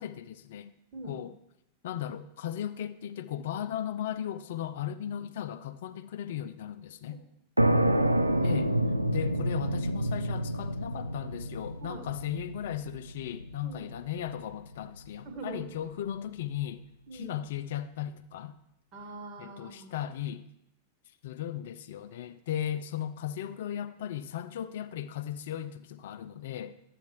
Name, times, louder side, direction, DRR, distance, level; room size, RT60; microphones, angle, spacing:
voice 1, 0.0-0.7 1.0-1.3 1.8-7.2 8.4-8.7 9.1-16.8 17.1-18.6 19.4-20.4 21.2-26.8, left 10 dB, 55° left, 0.4 m, -36 dB
voice 2, 7.6-8.5 11.8-12.1 13.6-13.8 15.2-15.6 17.1-17.4 18.9-20.0, right 3 dB, 35° right, 1.8 m, -42 dB
sound 1, 7.6-15.0, right 1 dB, 85° right, 0.4 m, -29 dB
11.5 x 8.3 x 3.0 m
figure-of-eight pair, 90°, 0 cm